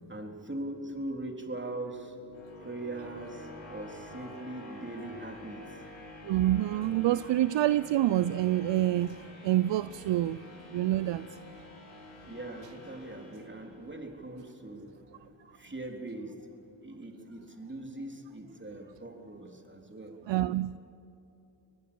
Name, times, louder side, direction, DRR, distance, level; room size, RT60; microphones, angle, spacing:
voice 1, 0.1-2.2 2.6-5.8 12.3-16.5 16.8-20.2, right 2 dB, 25° right, 3 dB, 3.6 m, -41 dB
sound 1, 1.2-14.2, left 2 dB, 85° left, 7.4 m, -49 dB
voice 2, 6.2-10.4 10.7-11.4 20.3-20.8, right 14 dB, 65° right, 16 dB, 0.6 m, -27 dB
25.0 x 19.0 x 7.1 m, 2.9 s
supercardioid pair, 50°, 47 cm